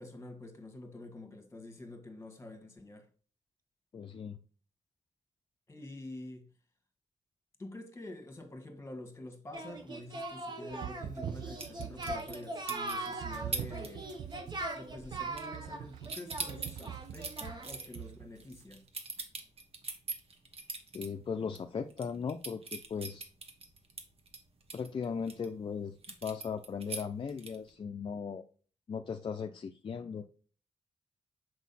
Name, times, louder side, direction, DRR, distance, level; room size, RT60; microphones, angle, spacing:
voice 1, 0.0-3.1 5.7-6.5 7.6-14.1 14.7-18.8, left 2 dB, 20° left, 1.4 m, -47 dB
voice 2, 3.9-4.4 20.9-23.2 24.7-28.4 28.9-30.3, left 6 dB, 45° left, 0.5 m, -38 dB
Singing, 9.5-17.9, right 2 dB, 40° right, 1.2 m, -41 dB
sound 1, 10.7-12.5 13.2-18.6, right 10 dB, 85° right, 0.4 m, -44 dB
sound 2, 11.6-12.4 12.7-13.1 13.5-13.9 14.2-14.5 14.8-15.8 16.0-21.1 21.5-21.6 21.9-25.5 26.0-27.7, right 4 dB, 60° right, 1.3 m, -41 dB
6.2 x 4.7 x 4.1 m
wide cardioid pair, 115°, 12 cm